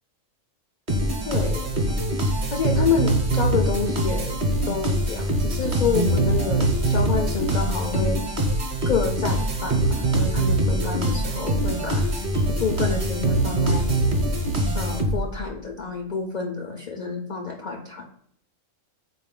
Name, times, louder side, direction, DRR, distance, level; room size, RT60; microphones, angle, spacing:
sound 1, 0.9-15.4, right 1 dB, 45° right, 0.9 m, -23 dB
voice 1, 1.3-1.7 2.5-4.4 4.6-8.2 8.9-12.1 12.6-13.9 14.7-18.1, left 5 dB, 70° left, 3 dB, 0.4 m, -28 dB
4.1 x 2.5 x 3.6 m, 0.68 s
omnidirectional pair, 1.4 m